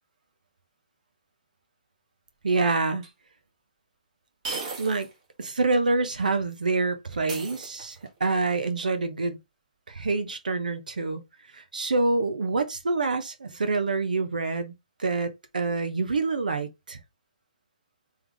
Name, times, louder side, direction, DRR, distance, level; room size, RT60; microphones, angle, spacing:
voice 1, 2.4-3.0 4.8-5.1 5.4-9.4 9.9-11.2 11.5-14.7 15.0-17.0, right 3 dB, 85° right, 1.0 m, -26 dB
sound 1, 3.0-3.1 4.4-5.2 5.5-5.6 7.3-8.2, right 3 dB, 55° right, 1.7 m, -36 dB
3.7 x 3.4 x 3.3 m
hypercardioid pair, 140°, 4 cm